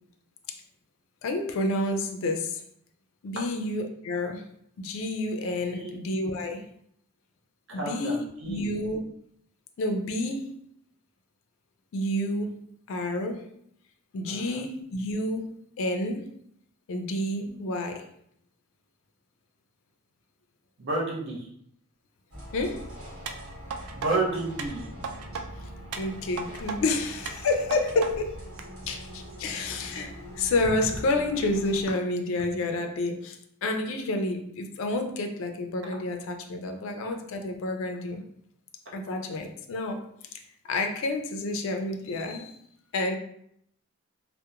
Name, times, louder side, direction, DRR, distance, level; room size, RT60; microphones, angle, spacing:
voice 1, 1.2-2.6 3.2-4.4 4.8-6.7 7.7-9.0 9.8-10.5 11.9-13.5 14.1-16.3 16.9-18.1 22.5-22.9 25.6-25.7 25.9-28.4 28.9-38.2 38.9-40.1 40.6-42.6 42.9-43.2, left 2 dB, 65° left, 5 dB, 0.3 m, -29 dB
voice 2, 7.7-8.6 14.2-14.6 17.4-17.6 20.8-21.5 23.9-24.9, right 2 dB, 55° right, -3 dB, 0.7 m, -31 dB
sound 1, 22.3-31.9, equal, 70° right, 1.0 m, -43 dB
sound 2, 23.3-24.1 24.6-25.4 25.9-26.8 27.3-28.1 28.6-28.7, right 5 dB, 85° right, 0.3 m, -36 dB
2.8 x 2.0 x 2.3 m, 0.69 s
head